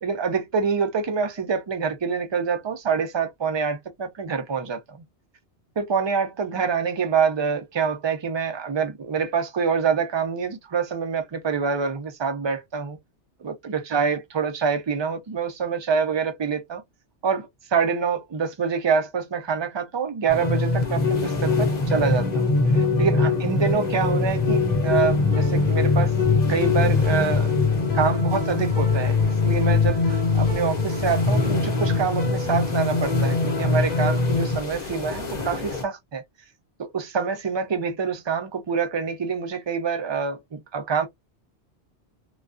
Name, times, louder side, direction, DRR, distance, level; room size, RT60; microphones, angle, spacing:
voice 1, 0.0-5.0 5.8-13.0 13.4-16.8 17.2-22.5 23.0-26.1 26.5-27.5 27.9-36.2 36.8-41.1, right 6 dB, 40° right, 0.4 m, -26 dB
sound 1, 20.3-35.8, left 3 dB, 45° left, 0.8 m, -22 dB
2.3 x 2.2 x 2.4 m
omnidirectional pair, 1.2 m